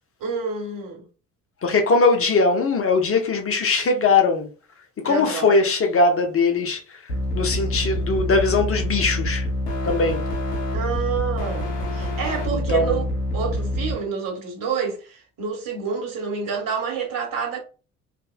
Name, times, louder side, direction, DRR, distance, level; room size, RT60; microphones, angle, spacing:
voice 1, 0.2-1.0 5.0-5.5 10.7-13.0 13.3-17.6, right 6 dB, 45° right, 1.6 m, -28 dB
voice 2, 1.6-4.5 5.0-7.0 7.3-9.5 9.8-10.2 12.5-13.0, left 3 dB, 30° left, 1.0 m, -20 dB
sound 1, 7.1-14.0, left 1 dB, 90° left, 0.7 m, -26 dB
3.5 x 2.8 x 2.2 m
figure-of-eight pair, 55°, 45 cm